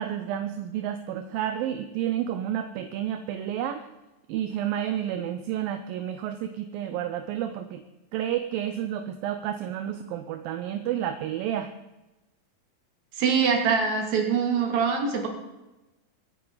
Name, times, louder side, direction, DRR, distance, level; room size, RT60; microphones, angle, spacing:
voice 1, 0.0-3.8 4.3-7.8 8.1-11.7, right 10 dB, 80° right, 8 dB, 2.5 m, -30 dB
voice 2, 13.2-15.3, right 6 dB, 55° right, 2 dB, 3.5 m, -23 dB
25.0 x 9.6 x 4.0 m, 1.0 s
omnidirectional pair, 4.2 m